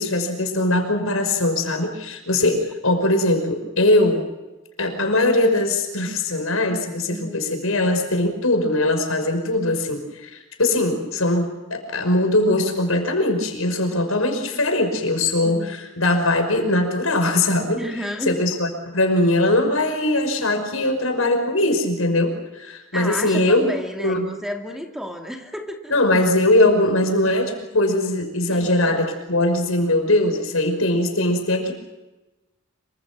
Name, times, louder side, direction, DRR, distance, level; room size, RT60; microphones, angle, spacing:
voice 1, 0.0-4.2 4.8-17.8 18.3-23.7 24.0-24.2 25.9-31.7, left 1 dB, 80° left, 5 dB, 5.8 m, -21 dB
voice 2, 7.0-7.4 15.4-15.8 17.7-18.4 22.9-25.9 28.5-29.1, equal, ahead, 3 dB, 2.6 m, -32 dB
26.5 x 25.0 x 6.2 m, 1.1 s
head